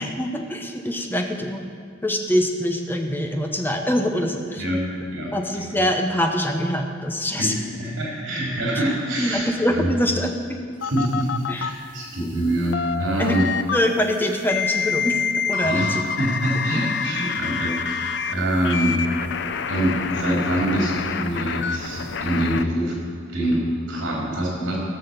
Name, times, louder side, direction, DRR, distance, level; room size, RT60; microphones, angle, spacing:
voice 1, 0.0-1.7 2.0-4.6 5.3-7.5 9.2-10.3 11.5-11.7 13.2-15.2 15.5-16.1, equal, 10° left, 3 dB, 1.0 m, -24 dB
voice 2, 4.6-5.4 5.7-5.8 7.4-9.9 10.8-11.3 11.5-13.4 15.6-19.0 19.7-22.9 23.3-24.8, right 1 dB, 70° right, -3 dB, 3.7 m, -25 dB
sound 1, 10.8-11.7 12.4-13.8 14.5-18.3 18.6-22.6, left 6 dB, 60° left, 0.6 m, -27 dB
17.0 x 6.5 x 6.7 m, 2.2 s
head